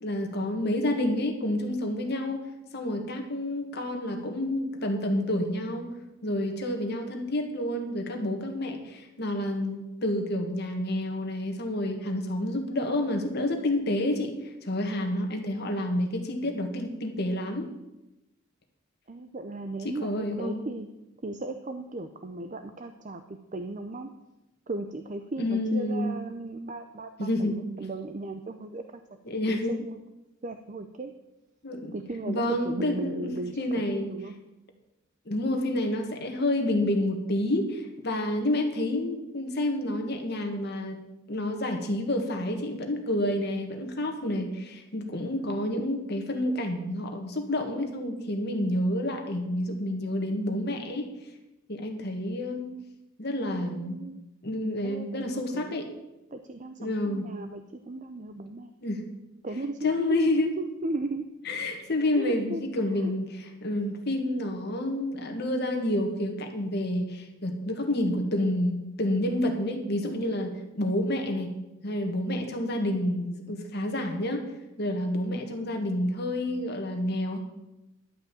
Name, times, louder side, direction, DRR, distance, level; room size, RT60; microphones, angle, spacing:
voice 1, 0.0-2.4 2.7-6.0 6.2-17.7 19.8-20.6 25.4-26.1 27.2-27.6 29.2-29.7 31.6-31.9 32.3-34.1 35.2-41.0 41.3-51.1 51.7-52.7 53.2-54.0 54.4-55.9 56.8-57.3 58.8-59.0 59.8-60.5 61.5-71.5 71.8-74.4 74.8-77.4, left 1 dB, 50° left, 4 dB, 1.7 m, -29 dB
voice 2, 19.1-20.9 21.2-24.1 24.7-29.0 29.5-30.0 30.4-31.1 31.9-33.6 33.9-34.3 53.5-54.2 54.8-55.8 56.3-58.7 59.4-61.3 62.1-62.7 63.0-63.1, right 2 dB, 35° right, 7 dB, 0.6 m, -36 dB
11.5 x 5.4 x 8.5 m, 0.97 s
head